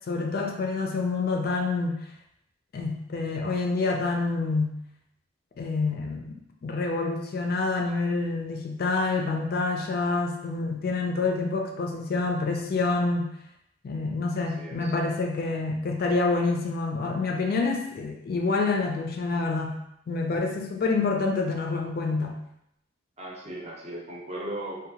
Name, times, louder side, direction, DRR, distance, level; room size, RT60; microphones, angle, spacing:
voice 1, 0.1-2.0 2.7-4.8 5.6-6.3 6.6-13.3 13.8-19.8 20.1-22.4, left 3 dB, 55° left, 2 dB, 0.4 m, -27 dB
voice 2, 14.6-14.9 23.2-24.9, right 1 dB, 35° right, -3 dB, 0.6 m, -37 dB
2.7 x 2.2 x 2.7 m, 0.78 s
head